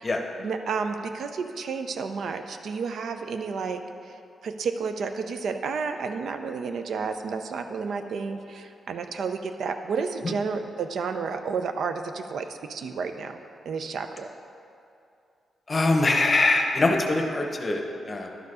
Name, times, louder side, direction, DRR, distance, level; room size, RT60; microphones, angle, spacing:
voice 1, 0.4-3.8 4.4-13.4 13.7-14.3, right 5 dB, 65° right, 7 dB, 0.4 m, -31 dB
voice 2, 15.7-18.3, left 2 dB, 25° left, 3 dB, 0.8 m, -23 dB
11.5 x 4.7 x 4.8 m, 2.6 s
wide cardioid pair, 135°, 0 cm